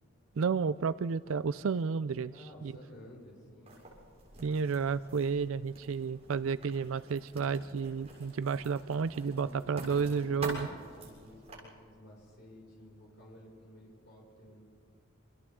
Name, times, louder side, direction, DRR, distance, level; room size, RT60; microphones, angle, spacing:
voice 1, 0.4-2.3 2.6-2.7 4.4-10.7, right 5 dB, 65° right, 15 dB, 0.4 m, -31 dB
voice 2, 2.3-3.8 9.4-14.6, left 1 dB, 55° left, -3 dB, 5.8 m, -53 dB
Writing, 3.7-11.5, right 1 dB, 30° right, 7.4 m, -47 dB
28.5 x 28.5 x 3.7 m, 2.2 s
head